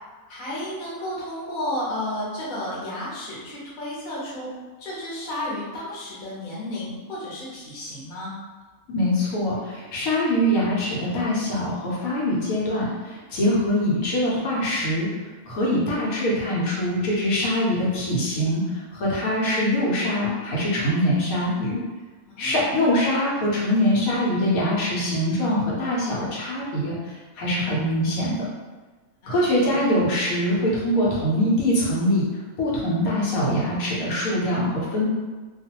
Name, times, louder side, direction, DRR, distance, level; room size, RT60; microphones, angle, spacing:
voice 1, 0.3-4.5 4.8-8.3 22.3-22.7 29.2-30.0, left 1 dB, 40° left, -7 dB, 0.9 m, -32 dB
voice 2, 8.9-15.1 15.4-21.8 22.4-28.5 29.3-32.3 32.6-35.1, left 1 dB, 80° left, -6 dB, 1.1 m, -23 dB
2.4 x 2.4 x 2.8 m, 1.3 s
omnidirectional pair, 1.5 m